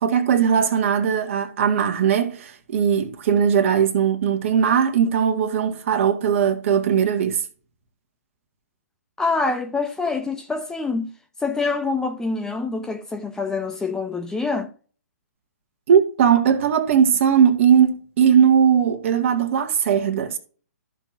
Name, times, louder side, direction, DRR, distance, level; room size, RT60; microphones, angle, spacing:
voice 1, 0.0-7.4 15.9-20.4, right 8 dB, 50° right, 1.7 m, -19 dB
voice 2, 9.2-11.1 11.4-14.7, left 4 dB, 5° left, 0.6 m, -25 dB
14.0 x 6.0 x 2.6 m
hypercardioid pair, 135°, 9 cm